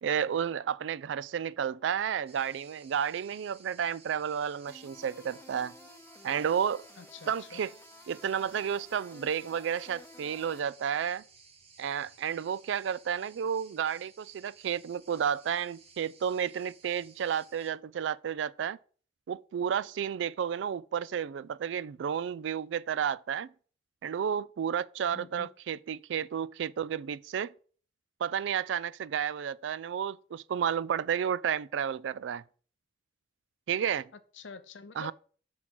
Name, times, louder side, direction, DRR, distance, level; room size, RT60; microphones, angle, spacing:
voice 1, 0.0-5.7 6.2-6.8 7.3-7.7 8.1-11.2 11.8-18.8 19.3-23.5 24.0-27.5 28.2-32.4 33.7-34.1 35.0-35.1, right 8 dB, 75° right, 0.3 m, -32 dB
sound 1, 2.3-17.7, right 5 dB, 35° right, 0.9 m, -58 dB
sound 2, 4.7-10.6, left 2 dB, 10° left, 0.8 m, -53 dB
voice 2, 7.0-7.6 25.1-25.5 34.1-35.1, left 4 dB, 80° left, 0.7 m, -47 dB
5.9 x 3.9 x 6.0 m
head